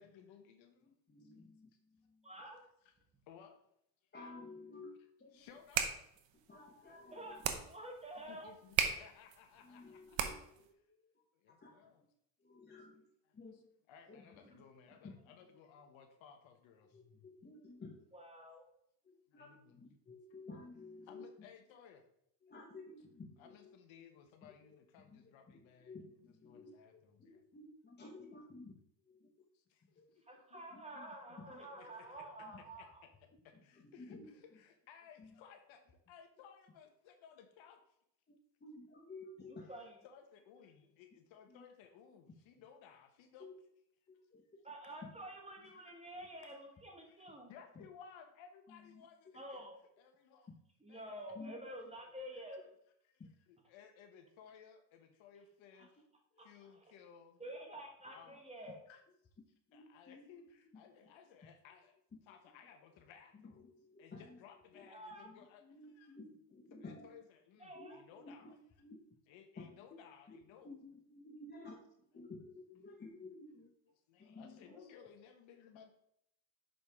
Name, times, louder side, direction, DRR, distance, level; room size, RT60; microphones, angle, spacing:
voice 1, 0.0-0.7 3.3-3.5 5.3-5.9 8.3-10.2 11.4-12.0 13.9-15.1 15.6-16.9 19.3-19.6 21.1-22.0 23.5-25.9 26.5-26.9 30.5-30.6 32.0-32.1 32.8-32.9 33.4-34.2 34.6-37.8 40.0-43.4 47.5-49.2 49.5-49.6 50.0-50.4 50.9-51.0 53.7-55.9 56.4-57.4 58.1-58.4 58.9-59.0 59.7-61.9 62.3-63.5 64.0-65.6 66.0-66.1 66.8-67.2 67.5-68.4 69.3-70.7 74.1-75.9, left 7 dB, 70° left, 6 dB, 1.1 m, -59 dB
voice 2, 0.8-1.7 4.1-5.5 6.3-7.6 9.6-11.7 12.4-13.6 14.1-14.4 15.0-15.6 16.8-18.0 19.0-21.5 22.4-24.0 24.4-28.8 29.1-29.3 30.0-30.1 30.5-32.1 32.4-32.6 33.3-34.6 35.2-35.4 38.3-39.7 41.1-41.2 41.5-41.6 43.4-43.6 44.1-44.4 45.0-45.1 45.6-45.7 47.7-47.9 48.7-49.1 50.5-50.6 51.3-51.6 55.8-55.9 56.3-56.5 59.4-61.1 62.1-62.7 63.3-64.9 65.2-67.1 67.7-69.1 69.6-70.0 70.3-73.7 74.2-75.0, left 3 dB, 20° left, -1 dB, 1.0 m, -55 dB
voice 3, 2.2-2.6 7.1-7.4 7.6-8.6 14.4-14.6 18.1-18.7 30.3-33.0 39.5-39.9 44.6-47.5 49.3-49.8 50.8-52.6 55.7-55.9 56.4-56.9 57.4-58.8 64.9-65.3 67.6-68.0 74.7-75.2, right 1 dB, 15° right, 1 dB, 1.5 m, -49 dB
sound 1, 5.5-10.7, right 8 dB, 65° right, 1.0 m, -39 dB
6.6 x 5.1 x 3.6 m, 0.72 s
cardioid pair, 100°, 48 cm